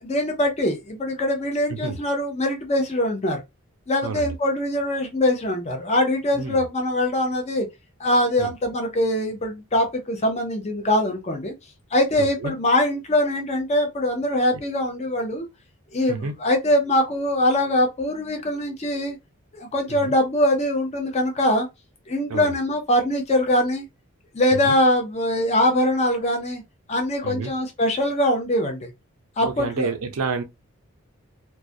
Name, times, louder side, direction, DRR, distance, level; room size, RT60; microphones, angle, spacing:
voice 1, 0.0-3.4 3.9-7.7 8.0-11.5 11.9-15.5 15.9-19.2 19.5-21.7 22.1-23.8 24.3-26.6 26.9-28.9 29.4-29.9, left 1 dB, 30° left, 0.5 m, -22 dB
voice 2, 4.0-4.3 6.3-6.6 8.4-8.5 12.2-12.5 16.1-16.3 19.9-20.1 22.3-22.6 24.5-24.8 27.2-27.5 29.4-30.4, right 4 dB, 85° right, 0.6 m, -29 dB
2.3 x 2.1 x 2.5 m
head